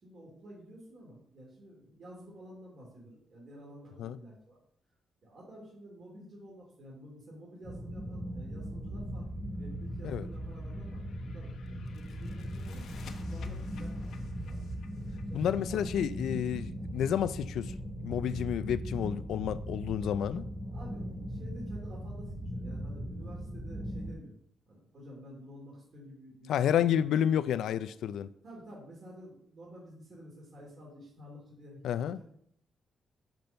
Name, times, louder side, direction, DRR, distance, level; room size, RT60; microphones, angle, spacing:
voice 1, 0.0-4.6 5.2-14.7 15.3-15.8 20.7-24.3 24.7-27.0 28.4-32.2, equal, 45° right, 2.9 m, -51 dB
sound 1, 7.6-24.1, equal, 10° right, 2.1 m, -39 dB
sound 2, 10.5-16.3, left 4 dB, 70° left, 0.9 m, -48 dB
voice 2, 15.3-17.7 18.0-20.4 26.5-28.3 31.8-32.2, left 9 dB, 90° left, 0.4 m, -30 dB
6.0 x 5.2 x 6.5 m
cardioid pair, 130°, 0 cm